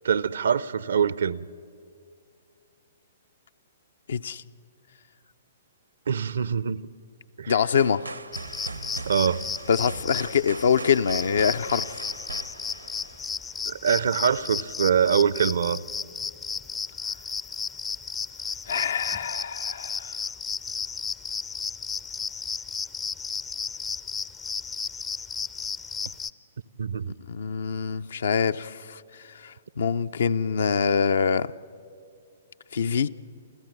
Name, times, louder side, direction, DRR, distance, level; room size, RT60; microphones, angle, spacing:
voice 1, 0.0-1.4 6.1-6.8 7.4-7.6 9.1-9.4 13.7-15.8 26.8-27.1, right 7 dB, 65° right, 0.6 m, -24 dB
voice 2, 4.1-4.4 7.5-8.1 9.7-12.0 18.7-20.2 27.3-29.0 29.3-31.5 32.7-33.1, left 6 dB, 60° left, 0.6 m, -25 dB
sound 1, 7.8-13.7, right 3 dB, 85° right, 1.1 m, -39 dB
sound 2, 8.3-26.3, left 6 dB, 15° left, 0.5 m, -34 dB
28.5 x 14.5 x 9.3 m
figure-of-eight pair, 115°, 0 cm